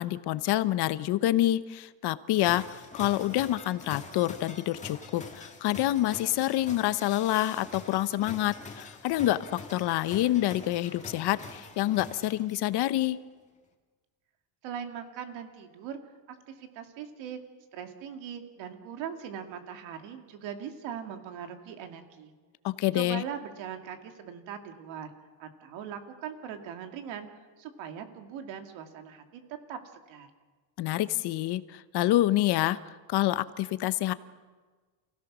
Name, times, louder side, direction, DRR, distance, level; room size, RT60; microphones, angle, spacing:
voice 1, 0.0-13.2 22.6-23.2 30.8-32.8 33.1-34.1, left 14 dB, 60° left, 15 dB, 0.9 m, -27 dB
sound 1, 2.4-12.8, left 4 dB, 15° left, 2.0 m, -45 dB
voice 2, 14.6-16.0 16.3-17.4 17.7-22.3 22.9-25.1 25.4-27.3 27.6-29.4 29.7-29.8 30.1-30.3, right 8 dB, 80° right, 6 dB, 2.4 m, -40 dB
28.5 x 16.5 x 6.2 m, 1.4 s
cardioid pair, 150°, 45 cm